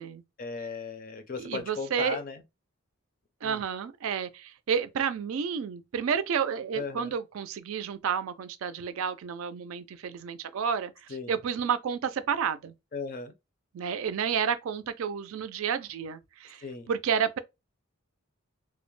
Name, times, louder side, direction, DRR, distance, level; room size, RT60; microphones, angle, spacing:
voice 1, 0.4-2.4 3.4-3.6 6.7-7.2 11.1-11.4 12.9-13.3 16.6-16.9, left 4 dB, 40° left, 0.4 m, -37 dB
voice 2, 1.4-2.2 3.4-10.9 11.3-12.7 13.7-16.6 16.9-17.4, right 7 dB, 70° right, 0.3 m, -30 dB
2.2 x 2.1 x 3.1 m
head